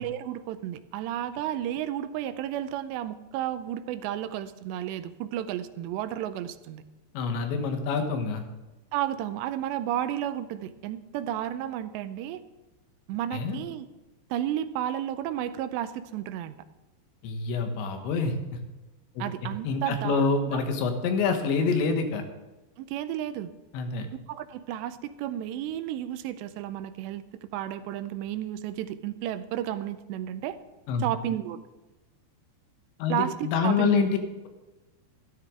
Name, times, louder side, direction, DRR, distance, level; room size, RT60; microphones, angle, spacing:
voice 1, 0.0-6.8 8.9-12.4 13.1-13.9 14.3-16.5 19.2-20.3 22.8-23.5 24.3-27.2 27.5-30.6 31.0-31.6 33.1-34.1, right 11 dB, 85° right, 12 dB, 2.8 m, -32 dB
voice 2, 7.2-8.4 13.3-13.6 17.2-18.3 19.2-19.3 19.6-22.2 23.7-24.1 30.9-31.1 33.0-34.1, left 5 dB, 90° left, 5 dB, 3.6 m, -26 dB
13.5 x 13.0 x 3.7 m, 1.1 s
omnidirectional pair, 5.0 m